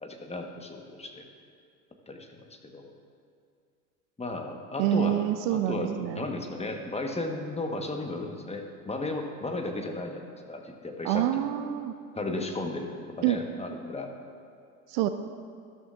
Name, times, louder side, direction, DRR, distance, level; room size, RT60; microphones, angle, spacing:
voice 1, 0.0-1.2 2.1-2.9 4.2-11.5 12.1-12.9 13.2-14.1, left 2 dB, 15° left, 3 dB, 1.2 m, -35 dB
voice 2, 4.8-6.2 11.0-11.9 13.2-13.4 14.9-15.1, right 13 dB, 50° right, 9 dB, 0.6 m, -26 dB
13.5 x 12.5 x 2.5 m, 2.4 s
hypercardioid pair, 75°, 46 cm